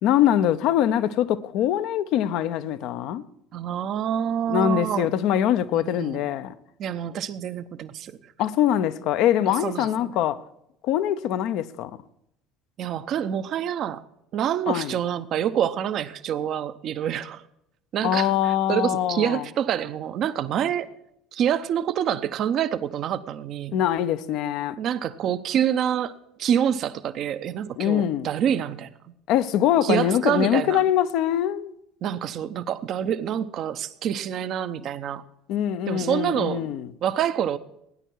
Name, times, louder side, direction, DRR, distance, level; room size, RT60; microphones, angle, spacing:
voice 1, 0.0-3.2 4.5-6.5 8.4-10.4 10.8-12.0 14.7-15.0 18.0-19.4 23.7-24.8 27.8-28.3 29.3-31.7 35.5-36.9, left 10 dB, 60° left, 0.7 m, -23 dB
voice 2, 3.5-5.1 5.7-6.2 6.8-8.2 9.6-9.9 12.8-14.0 14.3-17.4 17.9-20.9 21.3-23.8 24.8-26.1 26.4-28.9 29.8-30.8 32.0-35.2 35.9-36.7 37.0-37.6, right 9 dB, 50° right, 0.7 m, -26 dB
17.0 x 9.9 x 4.6 m
figure-of-eight pair, 65°, 0 cm